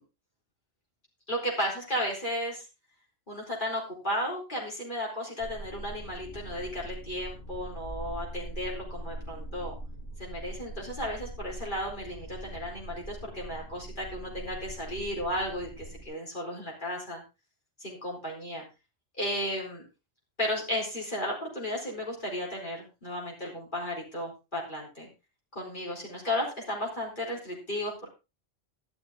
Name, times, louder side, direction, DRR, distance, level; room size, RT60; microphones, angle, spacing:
voice 1, 1.3-2.6 3.3-9.8 10.2-17.2 17.8-18.6 19.2-19.9 20.4-25.1 25.5-28.1, left 1 dB, 50° left, -3 dB, 4.4 m, -34 dB
sound 1, 5.4-16.1, right 1 dB, 75° left, 2.7 m, -42 dB
12.5 x 11.0 x 3.7 m, 0.28 s
omnidirectional pair, 1.1 m